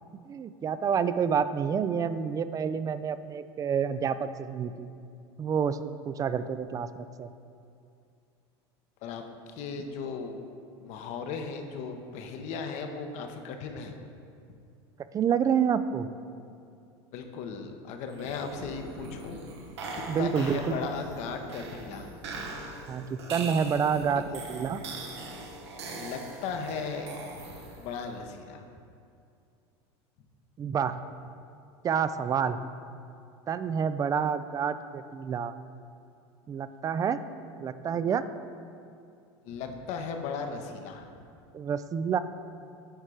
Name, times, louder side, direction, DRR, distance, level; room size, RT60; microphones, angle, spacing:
voice 1, 0.3-4.9 5.4-7.3 15.1-16.1 20.1-20.8 22.9-24.8 30.6-31.0 31.8-32.7 33.5-35.5 36.5-37.2 37.6-38.2 41.5-42.2, right 7 dB, 25° right, 13 dB, 0.3 m, -28 dB
voice 2, 9.0-10.4 10.8-14.0 17.1-19.4 19.9-22.1 24.2-24.3 25.9-27.1 27.4-27.5 27.8-28.6 39.4-41.1, left 5 dB, 55° left, 5 dB, 0.9 m, -37 dB
sound 1, 18.1-28.0, right 3 dB, 85° right, 1.2 m, -41 dB
9.1 x 4.4 x 4.9 m, 2.5 s
hypercardioid pair, 100°, 14 cm